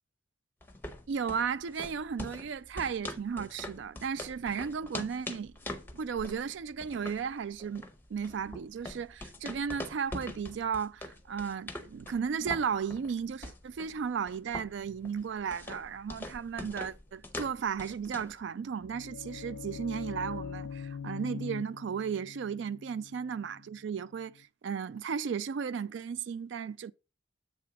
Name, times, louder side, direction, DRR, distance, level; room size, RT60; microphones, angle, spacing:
sound 1, 0.6-18.4, left 1 dB, 10° left, 0.7 m, -44 dB
voice 1, 1.1-5.5 5.9-26.9, right 6 dB, 65° right, 0.3 m, -35 dB
sound 2, 18.5-24.4, left 6 dB, 85° left, 0.4 m, -43 dB
7.5 x 3.6 x 5.8 m
head